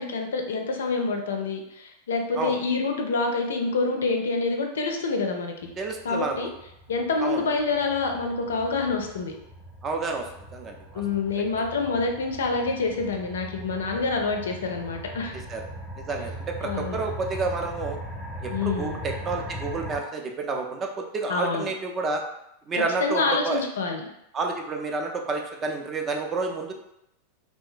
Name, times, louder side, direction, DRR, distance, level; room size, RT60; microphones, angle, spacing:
voice 1, 0.0-5.7 6.0-6.5 6.9-9.3 10.9-15.4 16.6-17.0 18.5-19.0 21.3-21.7 22.7-24.1, left 3 dB, 65° left, 3 dB, 0.4 m, -27 dB
sound 1, 5.6-20.0, equal, 5° right, 0.7 m, -40 dB
voice 2, 5.8-6.5 7.2-7.4 9.8-11.0 15.5-15.7 16.0-18.0 18.4-22.2 22.7-23.6 24.3-26.7, right 3 dB, 25° right, 2 dB, 0.4 m, -30 dB
2.8 x 2.2 x 2.4 m, 0.81 s
figure-of-eight pair, 90°, 0 cm